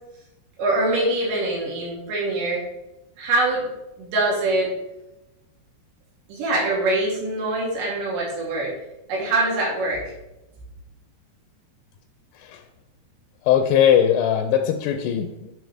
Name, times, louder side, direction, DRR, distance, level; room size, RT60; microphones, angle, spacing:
voice 1, 0.6-2.6 3.2-3.7 4.0-4.7 6.3-8.7 9.1-10.0, right 2 dB, 85° right, -4 dB, 4.8 m, -23 dB
voice 2, 13.5-15.5, left 9 dB, 80° left, 6 dB, 2.6 m, -19 dB
9.4 x 6.8 x 3.5 m, 0.94 s
omnidirectional pair, 5.0 m